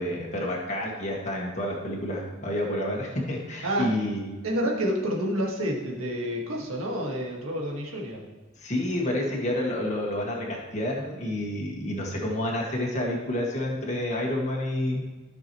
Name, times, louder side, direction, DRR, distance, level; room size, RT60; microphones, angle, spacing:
voice 1, 0.0-4.4 8.6-15.0, left 1 dB, 35° left, -2 dB, 1.8 m, -29 dB
voice 2, 3.6-4.0 4.4-8.3, equal, 90° right, -1 dB, 1.8 m, -29 dB
13.5 x 6.2 x 3.1 m, 1.2 s
head